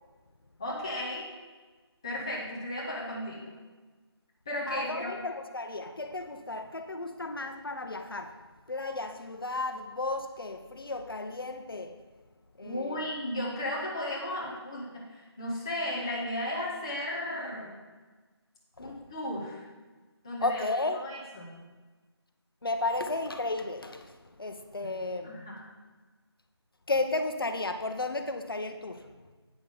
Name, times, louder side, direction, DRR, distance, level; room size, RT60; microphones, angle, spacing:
voice 1, 0.6-1.3 2.0-3.5 4.5-5.2 12.6-17.8 18.8-19.6 20.2-20.6 20.9-21.5 24.8-24.9 25.2-25.7, left 1 dB, 10° left, -5 dB, 0.6 m, -35 dB
voice 2, 4.7-8.4 8.7-12.0 12.6-13.1 18.8-19.0 20.4-21.0 22.6-25.3 26.9-29.1, left 2 dB, 55° left, 7 dB, 0.8 m, -33 dB
8.5 x 5.8 x 4.9 m, 1.3 s
figure-of-eight pair, 165°, 14 cm